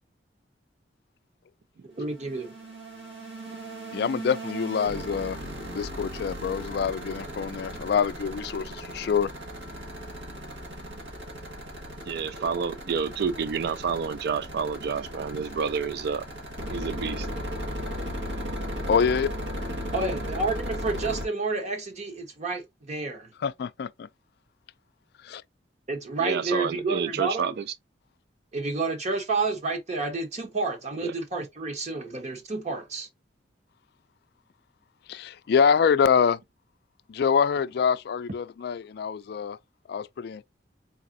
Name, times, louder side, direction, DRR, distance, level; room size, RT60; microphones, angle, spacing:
voice 1, 1.9-2.5 12.4-12.5 19.9-23.3 25.9-27.5 28.5-33.1, right 3 dB, 40° right, 1.0 m, -30 dB
sound 1, 1.9-21.3, equal, 80° right, 1.7 m, -36 dB
voice 2, 3.9-5.4 5.6-9.3 18.9-19.3 23.4-24.1 25.2-25.4 35.1-36.4 37.1-39.6 39.9-40.4, left 6 dB, 60° left, 0.3 m, -25 dB
voice 3, 12.1-16.3 16.7-17.3 26.2-27.7 31.0-31.1, right 6 dB, 60° right, 0.3 m, -29 dB
4.1 x 3.6 x 2.6 m
head